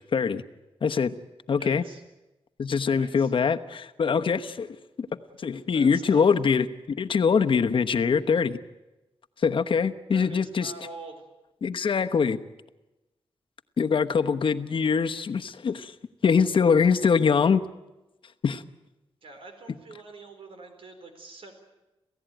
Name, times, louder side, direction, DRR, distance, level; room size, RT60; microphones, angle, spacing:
voice 1, 0.1-0.4 0.8-1.1 1.5-1.8 2.6-5.1 5.4-8.6 9.4-10.7 11.6-12.4 13.8-15.9 16.2-17.6 18.4-18.6, left 6 dB, 65° left, 8 dB, 1.1 m, -23 dB
voice 2, 1.6-2.0 2.9-3.3 5.7-6.2 10.1-11.3 19.2-21.5, right 3 dB, 75° right, 6 dB, 4.2 m, -45 dB
28.0 x 16.0 x 9.2 m, 1.0 s
wide cardioid pair, 115°, 10 cm